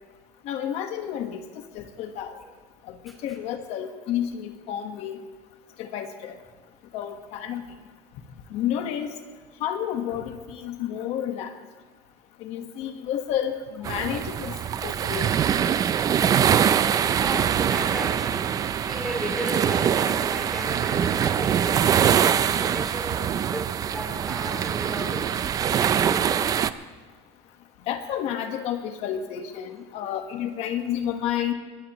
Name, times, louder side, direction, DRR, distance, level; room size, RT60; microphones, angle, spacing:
voice 1, 0.4-2.4 2.9-3.0 3.2-5.2 5.8-6.4 6.9-7.6 8.5-9.1 9.6-11.5 12.4-14.5 14.8-15.3 27.9-31.5, left 10 dB, 55° left, 6 dB, 1.4 m, -30 dB
voice 2, 3.1-3.4 13.8-14.1 17.1-25.4 25.8-26.5 29.6-29.7, equal, ahead, -1 dB, 3.3 m, -36 dB
sound 1, 13.8-26.7, right 8 dB, 30° right, 0.5 m, -23 dB
21.0 x 17.0 x 3.1 m, 1.4 s
cardioid pair, 150°, 13 cm